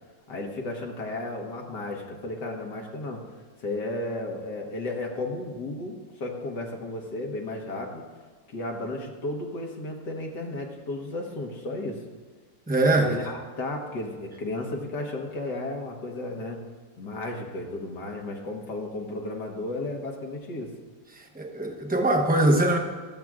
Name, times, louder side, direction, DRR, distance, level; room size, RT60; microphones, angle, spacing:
voice 1, 0.3-3.2 3.6-8.0 8.5-12.0 13.0-16.6 17.0-20.7, left 2 dB, 70° left, 0 dB, 2.0 m, -33 dB
voice 2, 12.7-13.1 21.3-22.8, right 1 dB, 10° right, 1 dB, 0.7 m, -22 dB
22.5 x 7.7 x 2.4 m, 1.5 s
omnidirectional pair, 2.0 m